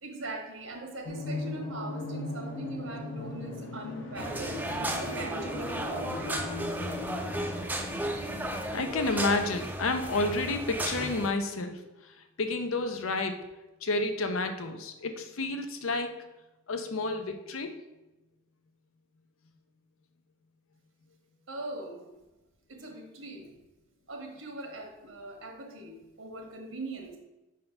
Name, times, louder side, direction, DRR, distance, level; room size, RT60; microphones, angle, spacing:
voice 1, 0.0-6.8 7.2-7.3 21.5-22.1 22.7-23.6 24.1-27.2, right 2 dB, 75° right, 2 dB, 1.3 m, -41 dB
sound 1, 1.1-8.9, left 1 dB, 60° left, 1.0 m, -38 dB
sound 2, 4.2-11.3, right 1 dB, 10° right, 0.5 m, -34 dB
voice 2, 8.7-11.8 12.4-13.5 13.8-16.1 16.7-17.8, left 2 dB, 80° left, 7 dB, 0.7 m, -30 dB
5.4 x 3.7 x 5.8 m, 1.0 s
head